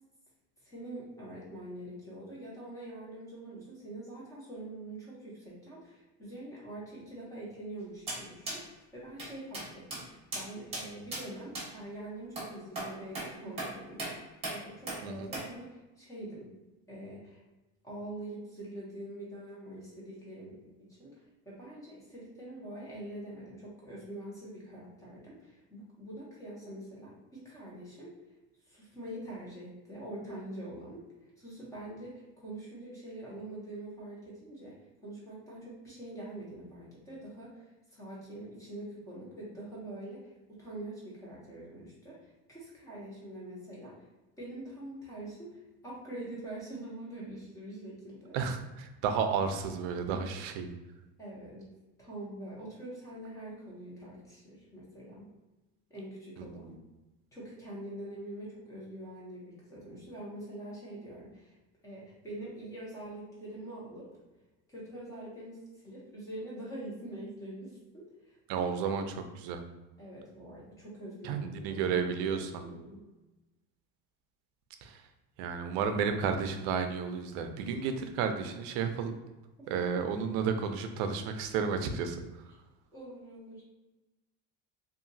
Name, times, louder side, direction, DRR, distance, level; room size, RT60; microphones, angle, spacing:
voice 1, 0.6-16.5 16.9-17.4 17.8-21.1 21.4-28.2 28.7-31.1 31.4-34.8 35.0-44.1 44.4-48.4 49.1-49.2 50.0-50.4 51.2-51.7 52.0-55.3 55.9-56.8 57.3-61.5 61.8-64.1 64.7-68.7 70.0-73.0 77.8-77.9 79.6-80.0 82.9-83.7, right 1 dB, 10° left, -6 dB, 0.7 m, -44 dB
sound 1, 8.1-8.2 8.5-8.6 9.2-9.3 9.5-9.7 9.9-10.0 10.3-10.4 10.7-10.8 11.1-11.2 11.5-11.7 12.4-12.5 12.8-12.9 13.1-13.3 13.6-13.7 14.0-14.1 14.4-14.6 14.9-15.0 15.3-15.5, right 2 dB, 20° right, 0.9 m, -36 dB
voice 2, 48.3-50.7 56.4-56.7 68.5-69.6 71.2-72.6 74.8-75.0 75.4-79.2 79.7-82.2, right 6 dB, 75° right, 7 dB, 0.5 m, -32 dB
2.8 x 2.4 x 2.6 m, 1.1 s
cardioid pair, 170°, 32 cm